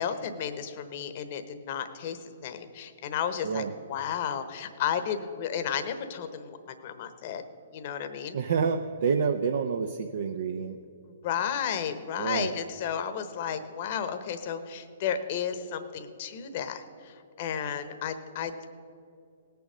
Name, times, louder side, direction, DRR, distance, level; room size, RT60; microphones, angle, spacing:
voice 1, 0.0-7.4 7.7-8.4 11.0-18.7, left 8 dB, 50° left, 9 dB, 1.0 m, -33 dB
voice 2, 8.3-10.8 12.2-12.5, right 6 dB, 65° right, 6 dB, 0.7 m, -28 dB
18.0 x 7.0 x 6.2 m, 2.6 s
hypercardioid pair, 130°, 0 cm